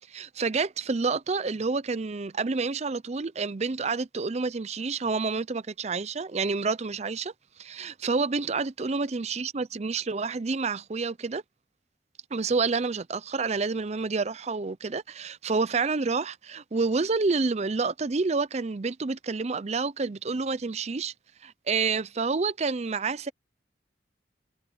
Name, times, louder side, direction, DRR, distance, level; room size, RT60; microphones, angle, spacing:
voice 1, 0.1-7.3 7.6-11.4 12.3-21.1 21.4-23.3, right 4 dB, 40° right, 0.6 m, -28 dB
head